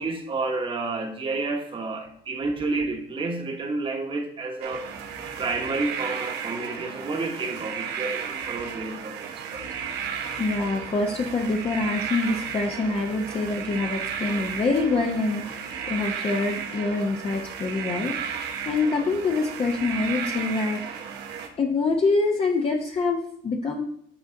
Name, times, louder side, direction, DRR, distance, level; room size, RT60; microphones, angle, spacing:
voice 1, 0.0-4.9 5.4-9.7, right 3 dB, 30° right, 3 dB, 1.2 m, -30 dB
sound 1, 4.6-21.5, right 7 dB, 80° right, 0.9 m, -34 dB
voice 2, 10.4-18.3 18.7-20.8 21.6-23.8, left 3 dB, 35° left, 1 dB, 0.8 m, -25 dB
7.8 x 4.0 x 3.8 m, 0.68 s
cardioid pair, 110°, 17 cm